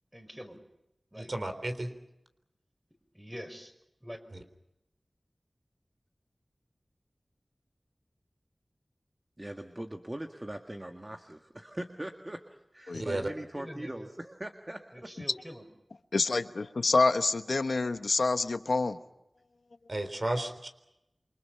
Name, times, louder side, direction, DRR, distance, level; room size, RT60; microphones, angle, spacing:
voice 1, 0.1-0.6 1.1-1.3 3.1-3.7 4.0-4.2 13.5-14.1 14.9-15.7, equal, 10° right, 6 dB, 5.5 m, -44 dB
voice 2, 1.1-1.9 4.3-4.4 12.9-13.3 19.9-20.7, right 1 dB, 55° right, 7 dB, 3.7 m, -33 dB
voice 3, 9.4-15.1, right 1 dB, 30° right, 5 dB, 1.8 m, -41 dB
voice 4, 16.1-19.0, left 3 dB, 90° left, 9 dB, 1.1 m, -27 dB
28.5 x 25.0 x 5.8 m, 0.87 s
wide cardioid pair, 45°, 0 cm